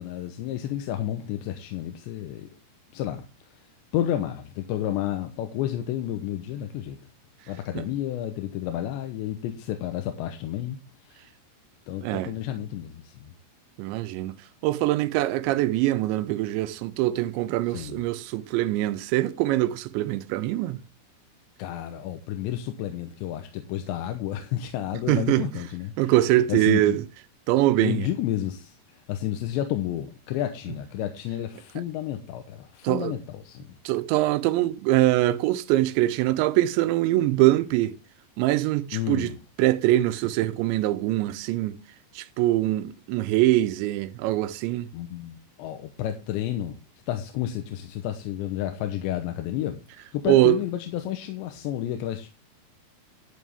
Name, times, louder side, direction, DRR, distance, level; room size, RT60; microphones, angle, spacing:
voice 1, 0.0-2.6 2.9-3.3 3.9-7.0 7.5-10.8 11.1-11.2 11.9-13.3 17.7-18.0 21.6-26.2 26.5-27.0 27.8-28.7 29.1-33.7 38.9-39.4 44.9-46.8 47.1-52.3, left 12 dB, 85° left, 3.2 m, -31 dB
voice 2, 12.0-12.3 13.8-14.3 14.6-20.8 25.1-25.5 26.0-27.0 27.5-28.1 32.8-33.2 33.9-38.0 38.4-39.3 39.6-41.8 42.2-44.9 50.3-50.6, right 15 dB, 90° right, 3.1 m, -23 dB
11.5 x 9.3 x 3.5 m
omnidirectional pair, 5.1 m